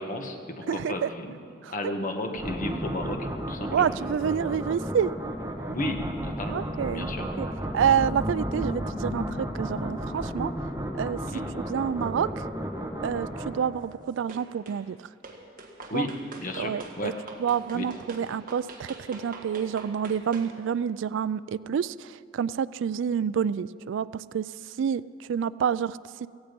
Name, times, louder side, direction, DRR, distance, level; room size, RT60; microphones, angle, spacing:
voice 1, 0.0-1.4 1.7-3.9 5.6-6.6 6.9-7.2 11.3-11.4 15.9-17.1 17.7-17.9, left 1 dB, 45° left, 4 dB, 1.5 m, -33 dB
voice 2, 0.7-1.1 1.6-1.7 3.7-5.1 6.5-7.5 7.7-10.5 10.9-11.2 11.6-12.4 13.0-15.1 15.9-16.1 16.6-17.1 17.4-26.3, right 8 dB, 65° right, 19 dB, 0.3 m, -28 dB
sound 1, 2.3-14.0, equal, 15° right, 1.2 m, -33 dB
sound 2, 14.3-14.8 15.2-20.5, right 3 dB, 45° right, 1.9 m, -44 dB
17.5 x 15.5 x 5.3 m, 2.3 s
head